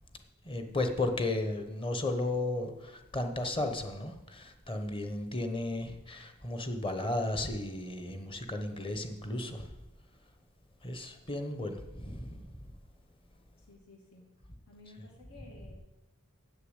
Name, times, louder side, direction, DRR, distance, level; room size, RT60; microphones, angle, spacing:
voice 1, 0.4-9.7 10.8-12.7, left 2 dB, 25° left, 7 dB, 1.0 m, -34 dB
voice 2, 13.6-14.3 14.7-15.8, left 2 dB, 80° left, 0 dB, 2.6 m, -54 dB
8.2 x 6.8 x 8.0 m, 1.0 s
head